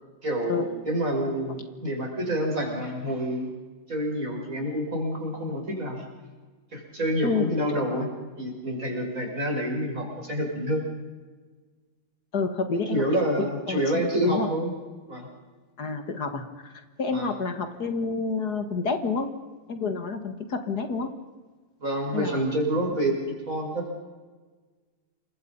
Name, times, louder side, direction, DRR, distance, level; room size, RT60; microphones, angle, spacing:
voice 1, 0.2-3.5 3.9-6.0 6.7-8.1 8.4-10.8 12.9-14.7 15.1-15.3 17.1-17.3 21.8-24.0, right 1 dB, 50° right, 0 dB, 6.5 m, -28 dB
voice 2, 12.3-13.0 13.4-14.5 15.8-19.3 19.7-21.1 22.1-22.4, left 4 dB, 65° left, 8 dB, 2.3 m, -29 dB
28.5 x 24.0 x 5.5 m, 1.4 s
omnidirectional pair, 1.8 m